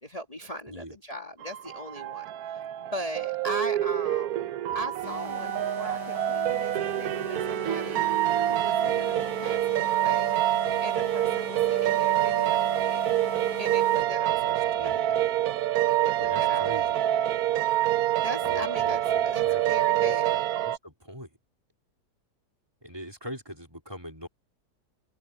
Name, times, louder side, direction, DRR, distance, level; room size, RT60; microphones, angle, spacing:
voice 1, 0.0-8.0 8.5-10.4 10.8-13.1 13.6-15.2 16.0-17.0 18.2-20.4, equal, 20° left, 2.2 m, -39 dB
sound 1, 1.4-20.8, right 13 dB, 70° right, 1.0 m, -26 dB
sound 2, 5.0-14.0, left 8 dB, 50° left, 2.1 m, -42 dB
voice 2, 14.4-15.3 16.1-17.0 18.2-21.4 22.8-24.3, equal, 15° right, 3.5 m, -43 dB
open air
omnidirectional pair, 1.8 m